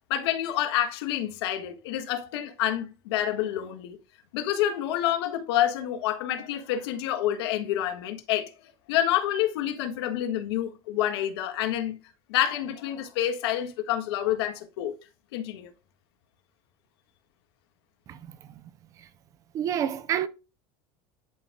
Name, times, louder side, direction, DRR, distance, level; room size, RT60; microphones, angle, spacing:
voice 1, 0.1-4.0 4.3-8.5 8.9-12.0 12.3-14.9 15.3-15.7, left 11 dB, 90° left, 1.6 m, -28 dB
voice 2, 19.5-20.3, right 9 dB, 25° right, 0.4 m, -28 dB
11.0 x 4.9 x 2.2 m
cardioid pair, 175°, 13 cm